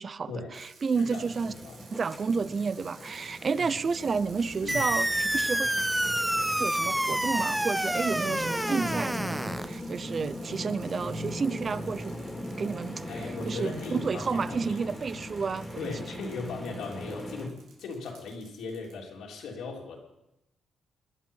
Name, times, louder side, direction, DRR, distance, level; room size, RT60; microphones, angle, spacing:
voice 1, 0.0-1.5 1.9-5.7 6.6-12.1 12.6-15.9, right 5 dB, 40° right, 17 dB, 0.6 m, -31 dB
sound 1, 0.5-19.0, right 4 dB, 85° right, 3.6 m, -55 dB
voice 2, 0.9-1.8 3.5-3.7 4.6-4.8 8.7-8.9 13.1-14.9 15.8-20.0, left 4 dB, 80° left, -1 dB, 3.4 m, -38 dB
sound 2, 0.9-17.5, equal, 10° left, 2.8 m, -39 dB
sound 3, 4.7-9.7, right 1 dB, 5° right, 0.9 m, -28 dB
18.5 x 11.5 x 5.6 m, 0.89 s
cardioid pair, 105°, 0 cm